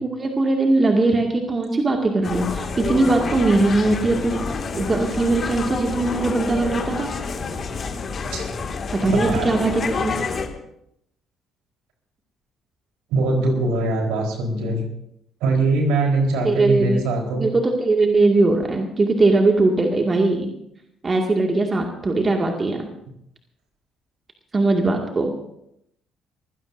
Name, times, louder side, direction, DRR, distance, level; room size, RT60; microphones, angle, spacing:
voice 1, 0.0-7.1 9.0-10.2 16.4-17.0 17.4-20.5 21.0-22.9 24.5-25.3, right 2 dB, 30° right, 2 dB, 2.1 m, -20 dB
sound 1, 2.2-10.5, left 4 dB, 45° left, 2.1 m, -28 dB
voice 2, 9.1-9.5 13.1-14.8 15.4-17.5, right 2 dB, 70° right, 1 dB, 4.1 m, -22 dB
25.0 x 16.0 x 2.7 m, 0.77 s
figure-of-eight pair, 50°, 0 cm